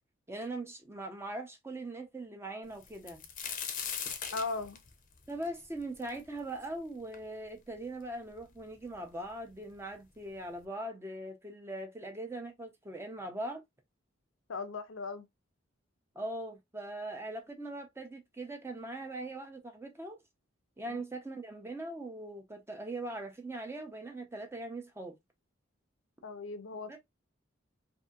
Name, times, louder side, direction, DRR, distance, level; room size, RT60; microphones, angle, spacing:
voice 1, 0.3-3.2 5.3-13.6 16.1-20.2 20.8-25.1 26.9-27.0, right 1 dB, 15° right, 0.6 m, -41 dB
sound 1, 2.8-6.6 7.1-7.2 8.0-8.1 8.4-9.0 9.9-10.0 10.4-10.6, left 7 dB, 45° left, 0.6 m, -39 dB
voice 2, 4.3-4.8 14.5-15.2 20.9-21.0 26.2-27.0, left 3 dB, 85° left, 0.6 m, -38 dB
2.7 x 2.6 x 2.3 m
head